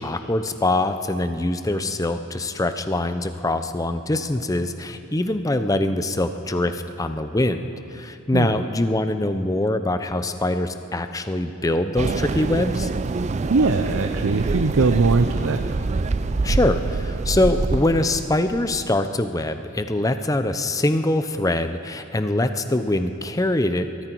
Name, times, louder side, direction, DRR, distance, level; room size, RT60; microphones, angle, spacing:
voice 1, 0.0-7.6 7.9-12.9 16.4-23.9, left 1 dB, 15° left, 9 dB, 0.6 m, -23 dB
sound 1, 12.0-19.0, right 3 dB, 35° right, 0.3 m, -26 dB
voice 2, 13.5-15.6, right 4 dB, 85° right, 7 dB, 0.6 m, -20 dB
23.0 x 13.5 x 4.6 m, 2.8 s
head